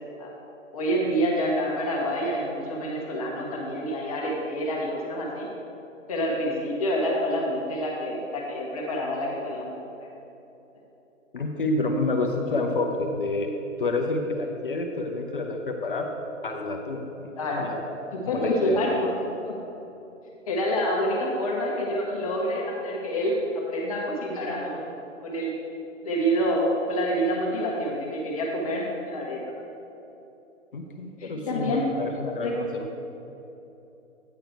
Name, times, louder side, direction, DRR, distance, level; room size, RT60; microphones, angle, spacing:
voice 1, 0.7-5.5 6.1-9.8 17.3-17.7 18.1-19.1 19.5-19.6 20.5-24.8 25.2-25.5 26.0-29.4 31.2-31.9 32.4-32.6, equal, 25° left, -3 dB, 1.0 m, -27 dB
voice 2, 11.3-13.5 13.8-16.1 16.4-17.8 18.3-18.8 30.7-32.9, left 2 dB, 45° left, 2 dB, 0.6 m, -29 dB
9.1 x 4.9 x 4.5 m, 3.0 s
figure-of-eight pair, 150°, 39 cm